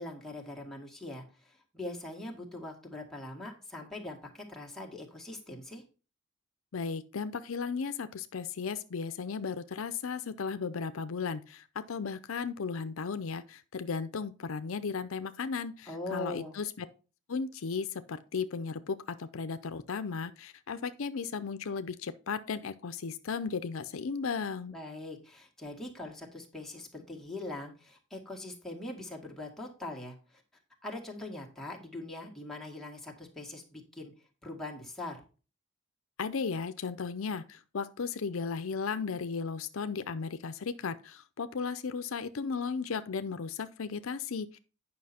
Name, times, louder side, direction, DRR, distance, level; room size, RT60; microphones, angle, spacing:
voice 1, 0.0-5.8 15.9-16.6 24.7-30.4 30.8-34.1 34.4-35.2, left 2 dB, ahead, 1.9 m, -42 dB
voice 2, 6.7-16.9 17.3-24.8 36.2-44.6, left 5 dB, 70° left, 0.5 m, -35 dB
9.5 x 5.7 x 4.3 m
head